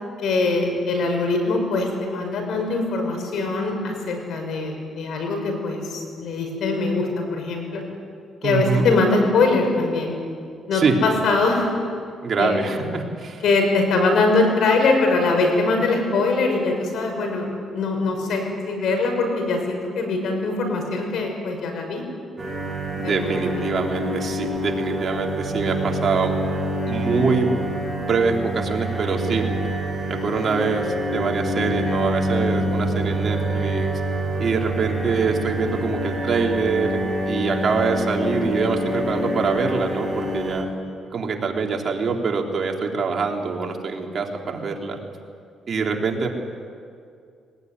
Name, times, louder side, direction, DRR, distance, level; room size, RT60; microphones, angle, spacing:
voice 1, 0.2-7.8 8.4-10.2 10.7-11.7 12.4-12.6 13.4-22.0 23.0-23.7, left 3 dB, 70° left, 3 dB, 6.1 m, -22 dB
voice 2, 8.4-8.9 10.7-11.0 12.2-13.4 22.9-26.3 26.9-27.5 28.0-29.5 30.1-33.9 34.4-40.6 41.1-45.0 45.7-46.3, right 4 dB, 50° right, 1 dB, 3.2 m, -24 dB
sound 1, 22.4-40.6, right 1 dB, 20° right, 7.7 m, -26 dB
21.5 x 19.5 x 9.6 m, 2.3 s
cardioid pair, 90°, 0 cm